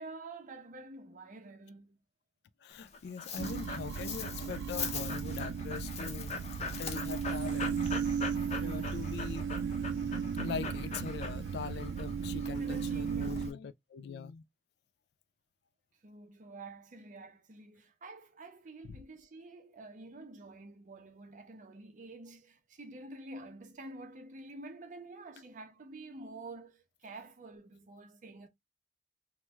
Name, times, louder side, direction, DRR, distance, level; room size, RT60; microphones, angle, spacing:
voice 1, 0.0-2.0 12.5-13.5 16.0-28.5, right 2 dB, 45° right, 0.6 m, -48 dB
voice 2, 2.6-6.3 6.8-7.8 8.6-9.5 10.4-14.4 18.8-19.0, left 6 dB, 65° left, 0.3 m, -42 dB
Dog, 2.7-13.5, left 5 dB, 40° left, 0.7 m, -42 dB
sound 1, 3.4-13.5, right 6 dB, 80° right, 0.3 m, -35 dB
3.0 x 2.2 x 3.3 m
head